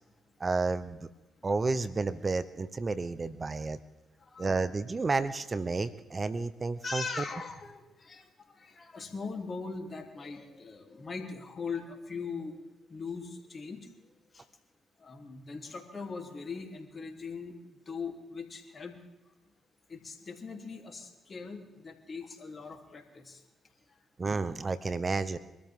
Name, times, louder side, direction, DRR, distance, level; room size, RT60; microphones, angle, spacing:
voice 1, 0.4-1.1 1.4-3.8 4.4-7.0 24.2-25.4, right 3 dB, 35° right, 14 dB, 1.0 m, -31 dB
voice 2, 4.2-4.5 6.8-12.6 12.9-13.9 14.3-14.4 15.0-17.5 17.9-19.0 19.9-23.4, left 4 dB, 45° left, 3 dB, 3.3 m, -40 dB
24.5 x 13.5 x 3.8 m, 1.0 s
hypercardioid pair, 45°, 0 cm